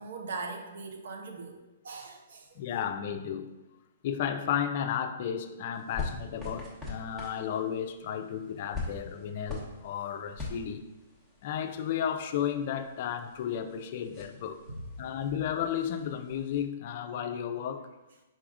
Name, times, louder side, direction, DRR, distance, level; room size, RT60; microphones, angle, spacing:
voice 1, 0.0-1.6 1.8-2.7 14.7-14.8, right 3 dB, 70° right, 3 dB, 0.7 m, -40 dB
voice 2, 2.6-3.5 4.0-10.8 11.4-14.6 15.0-17.9, left 9 dB, 50° left, 8 dB, 0.4 m, -33 dB
sound 1, 5.7-16.6, left 3 dB, 10° right, 0.9 m, -44 dB
4.6 x 4.2 x 2.4 m, 1.0 s
hypercardioid pair, 140°, 0 cm